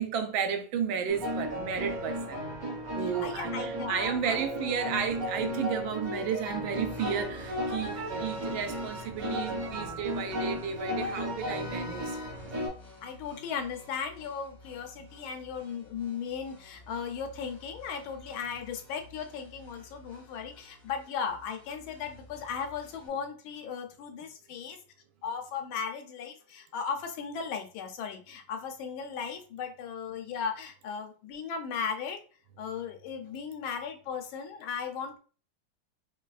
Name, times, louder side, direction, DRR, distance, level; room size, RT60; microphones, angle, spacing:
voice 1, 0.0-2.4 2.9-12.2, right 7 dB, 80° right, 1.3 m, -33 dB
sound 1, 1.1-12.7, equal, 50° right, 1.5 m, -35 dB
voice 2, 3.2-4.7 13.0-24.8 25.2-32.2 32.6-35.2, left 6 dB, 85° left, 1.4 m, -37 dB
sound 2, 6.7-23.1, left 2 dB, 30° left, 1.5 m, -53 dB
5.2 x 2.3 x 2.3 m
omnidirectional pair, 2.2 m